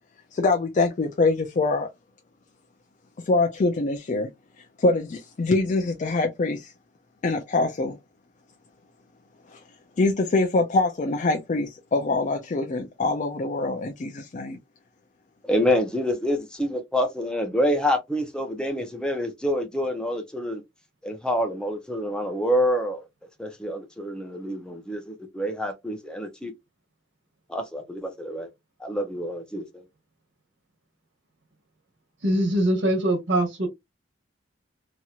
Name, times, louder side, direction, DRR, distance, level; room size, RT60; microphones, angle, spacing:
voice 1, 0.3-1.9 3.2-4.3 4.8-6.7 7.2-8.0 9.5-9.6 10.0-14.6, left 3 dB, 40° left, 0.4 m, -24 dB
voice 2, 15.4-20.6 21.0-23.1 23.4-26.5 27.5-28.5 28.8-29.8, equal, 5° left, 0.7 m, -27 dB
voice 3, 32.2-33.7, right 1 dB, 75° right, 1.4 m, -22 dB
2.9 x 2.8 x 2.4 m
head